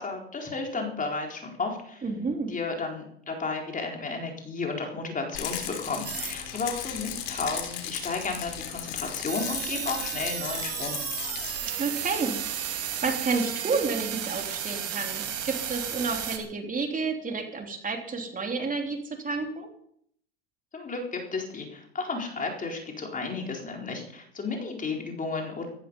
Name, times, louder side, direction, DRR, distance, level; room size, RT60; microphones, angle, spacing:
voice 1, 0.0-2.0 2.5-11.0 20.7-25.7, left 3 dB, 25° left, 2 dB, 4.2 m, -33 dB
voice 2, 2.0-2.5 11.8-19.7, right 4 dB, 25° right, 3 dB, 3.3 m, -30 dB
Rattle, 5.3-11.6, left 10 dB, 70° left, 3.4 m, -36 dB
sound 1, 6.0-16.4, right 9 dB, 50° right, 3.3 m, -34 dB
15.0 x 14.5 x 5.4 m, 0.68 s
hypercardioid pair, 85°, 32 cm